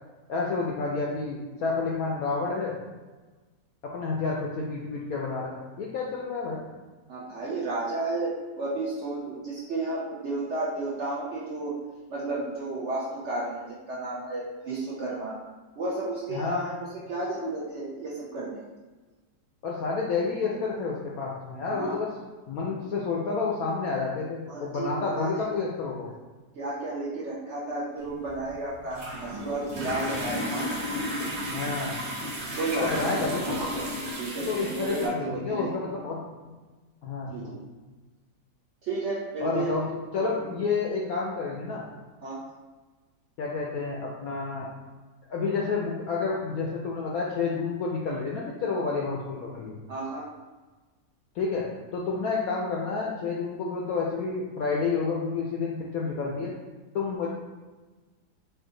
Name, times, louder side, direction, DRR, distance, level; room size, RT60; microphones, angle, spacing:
voice 1, 0.3-2.7 3.8-6.6 16.3-16.7 19.6-22.1 22.5-26.1 30.1-30.2 31.5-32.0 32.8-33.4 34.4-36.2 37.0-37.5 39.4-39.9 40.1-41.8 43.4-44.7 45.3-49.7 51.4-51.7 51.9-56.5 56.9-57.3, left 4 dB, 75° left, -2 dB, 0.8 m, -29 dB
voice 2, 7.1-11.7 12.1-15.4 15.8-18.6 21.7-21.9 24.5-25.5 26.6-30.8 32.5-33.1 34.2-35.7 37.3-37.6 38.8-39.7 42.2-42.4 49.9-50.3, right 2 dB, 75° right, -6 dB, 0.6 m, -32 dB
sound 1, 28.0-35.1, equal, 60° right, 1.5 m, -33 dB
4.4 x 2.5 x 3.8 m, 1.3 s
omnidirectional pair, 2.0 m